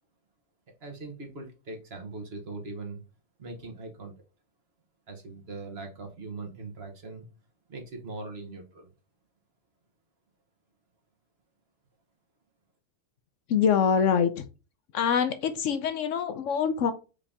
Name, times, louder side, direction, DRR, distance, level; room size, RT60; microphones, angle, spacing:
voice 1, 0.8-3.0 3.4-4.1 5.1-7.3 7.7-8.9, right 3 dB, 50° right, 4 dB, 1.2 m, -40 dB
voice 2, 13.5-14.5 14.9-16.9, left 7 dB, 70° left, 9 dB, 0.9 m, -25 dB
5.0 x 2.8 x 3.5 m, 0.32 s
omnidirectional pair, 1.4 m